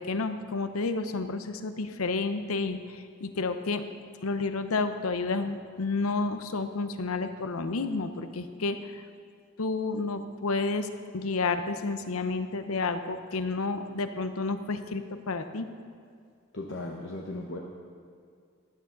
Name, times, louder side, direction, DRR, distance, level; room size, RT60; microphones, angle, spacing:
voice 1, 0.0-3.8 4.2-9.0 9.6-15.7, left 3 dB, 85° left, 9 dB, 0.8 m, -30 dB
voice 2, 16.5-17.6, left 2 dB, 55° left, -1 dB, 1.0 m, -36 dB
16.0 x 11.0 x 3.9 m, 2.3 s
head